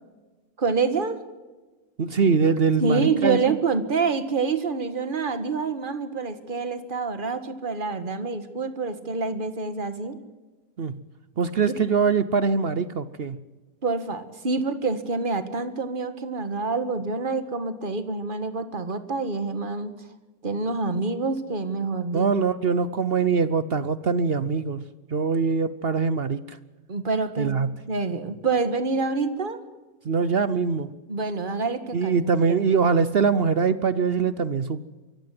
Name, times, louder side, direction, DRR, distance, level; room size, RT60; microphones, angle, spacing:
voice 1, 0.6-1.2 2.8-10.2 13.8-19.9 20.4-22.3 26.9-27.5 27.9-29.6 31.1-32.1 32.5-32.6, right 4 dB, 30° right, 11 dB, 1.6 m, -27 dB
voice 2, 2.0-3.6 10.8-11.0 11.4-13.4 22.1-24.8 25.1-26.6 27.4-27.7 30.0-30.9 31.9-34.9, right 5 dB, 55° right, 15 dB, 0.6 m, -23 dB
24.0 x 15.5 x 7.7 m, 1.2 s
omnidirectional pair, 1.9 m